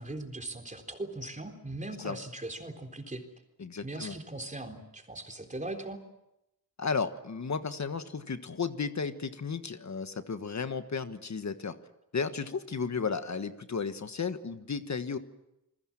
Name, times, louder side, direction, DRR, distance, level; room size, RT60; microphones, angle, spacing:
voice 1, 0.0-3.2 3.8-6.0, right 2 dB, 20° right, 4 dB, 3.9 m, -39 dB
voice 2, 3.6-4.2 6.8-11.8 12.1-15.2, left 5 dB, 50° left, 10 dB, 1.4 m, -34 dB
29.0 x 21.0 x 7.5 m, 0.88 s
wide cardioid pair, 105°, 36 cm